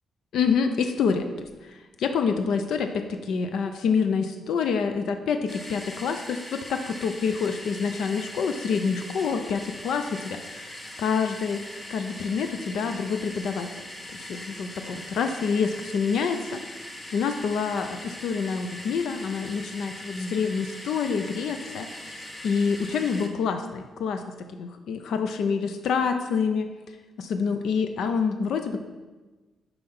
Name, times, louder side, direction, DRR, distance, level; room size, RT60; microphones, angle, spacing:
voice 1, 0.3-1.3 1.6-10.7 11.0-11.6 11.9-13.7 14.1-16.6 17.1-21.9 22.4-26.7 27.2-28.8, left 5 dB, 70° left, 7 dB, 0.4 m, -27 dB
sound 1, 5.5-23.3, left 1 dB, 15° left, 0.7 m, -41 dB
5.5 x 4.5 x 5.3 m, 1.2 s
cardioid pair, 160°, 0 cm